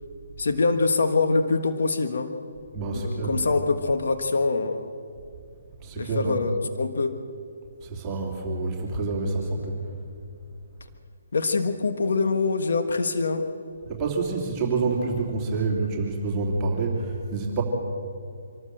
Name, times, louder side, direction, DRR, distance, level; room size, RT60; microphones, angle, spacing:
voice 1, 0.4-2.3 2.9-4.9 6.0-7.2 11.3-13.5, left 3 dB, 70° left, 7 dB, 1.5 m, -24 dB
voice 2, 2.7-3.4 5.8-6.4 7.8-9.8 13.9-17.6, right 3 dB, 20° right, -2 dB, 3.0 m, -27 dB
25.5 x 13.0 x 7.9 m, 2.5 s
hypercardioid pair, 150°, 0 cm